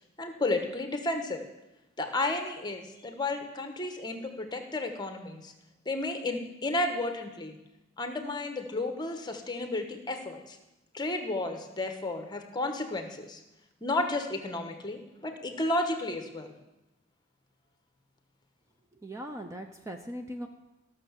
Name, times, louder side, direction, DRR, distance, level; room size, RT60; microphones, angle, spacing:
voice 1, 0.2-1.4 2.0-5.5 5.8-7.6 8.0-10.6 10.9-13.4 13.8-16.5, left 2 dB, 20° left, 6 dB, 1.1 m, -32 dB
voice 2, 19.0-20.5, equal, 15° right, 4 dB, 0.6 m, -39 dB
14.0 x 6.5 x 7.2 m, 0.96 s
head